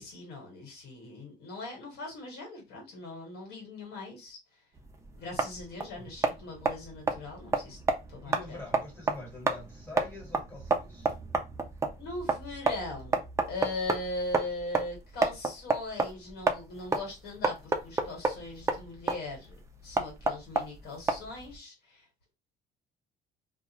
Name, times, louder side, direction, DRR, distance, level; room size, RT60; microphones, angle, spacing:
voice 1, 0.0-4.4 5.2-7.8 8.1-8.6 12.0-19.5 19.8-22.0, left 2 dB, 75° left, 1.4 m, -40 dB
sound 1, 4.8-21.6, right 3 dB, 15° right, 0.4 m, -31 dB
voice 2, 8.2-11.1, left 2 dB, 15° left, 1.5 m, -45 dB
2.3 x 2.3 x 2.8 m
cardioid pair, 110°, 17 cm